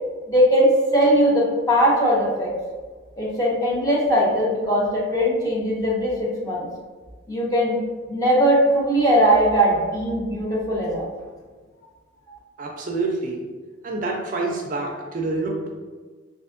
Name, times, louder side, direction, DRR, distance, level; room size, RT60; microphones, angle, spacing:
voice 1, 0.3-2.5 3.2-6.7 7.3-7.8 8.1-11.1 12.3-12.4, equal, 15° left, -4 dB, 0.6 m, -20 dB
voice 2, 12.6-13.5 13.8-15.7, right 3 dB, 40° right, 0 dB, 0.3 m, -27 dB
3.3 x 2.4 x 2.5 m, 1.4 s
head